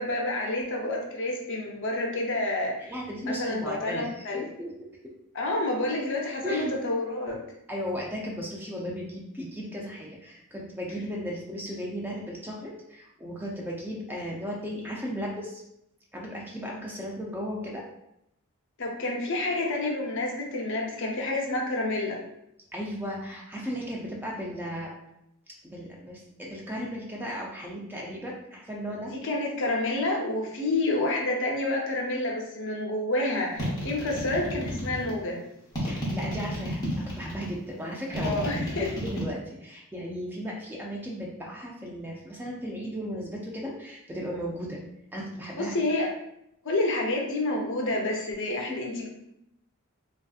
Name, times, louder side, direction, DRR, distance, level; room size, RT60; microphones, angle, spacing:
voice 1, 0.0-2.9 3.3-4.4 5.3-7.4 18.8-22.2 29.1-35.4 38.2-38.9 45.6-46.1 46.6-49.1, left 2 dB, 55° left, 0 dB, 0.6 m, -29 dB
voice 2, 2.9-4.7 5.0-5.1 6.4-6.8 7.7-15.6 16.1-17.8 22.7-24.9 25.6-29.1 35.8-38.4 38.7-44.8 45.1-45.7, equal, 10° right, -3 dB, 0.3 m, -36 dB
sound 1, 33.6-35.1 35.7-37.5 38.1-39.2, equal, 15° left, 0.8 m, -32 dB
3.3 x 2.6 x 2.3 m, 0.78 s
head